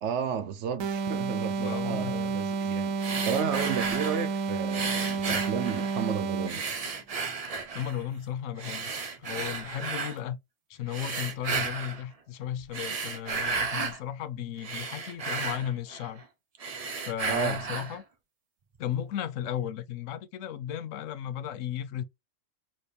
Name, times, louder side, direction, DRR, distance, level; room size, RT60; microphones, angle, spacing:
voice 1, 0.0-6.6 17.3-17.6, right 7 dB, 65° right, 0.9 m, -33 dB
sound 1, 0.8-6.7, right 4 dB, 90° right, 1.1 m, -30 dB
voice 2, 1.6-2.4 7.7-8.9 9.2-10.4 10.7-16.2 17.1-18.0 18.8-22.0, left 10 dB, 75° left, 0.9 m, -35 dB
sound 2, 3.0-4.3 4.7-6.1 6.5-8.0 8.6-10.2 10.9-12.0 12.6-14.0 14.4-16.2 16.5-18.0, right 4 dB, 45° right, 0.5 m, -33 dB
3.4 x 3.2 x 4.1 m
omnidirectional pair, 1.3 m